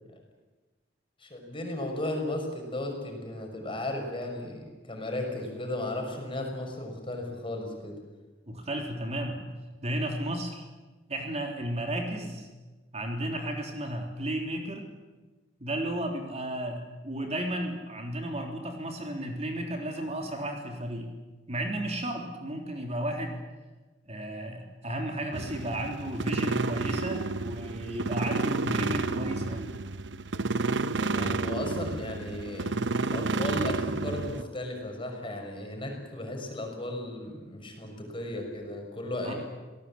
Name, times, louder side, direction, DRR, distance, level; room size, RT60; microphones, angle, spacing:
voice 1, 1.2-8.0 31.0-39.3, left 1 dB, 30° left, 2 dB, 5.9 m, -35 dB
voice 2, 8.5-9.5 9.8-10.6 11.1-12.5 12.9-14.9 15.6-21.1 21.5-23.4 24.0-29.7 39.2-39.3, right 1 dB, 35° right, 2 dB, 3.4 m, -33 dB
sound 1, 25.3-34.4, right 3 dB, 70° right, 0.9 m, -31 dB
27.5 x 18.5 x 8.7 m, 1.2 s
head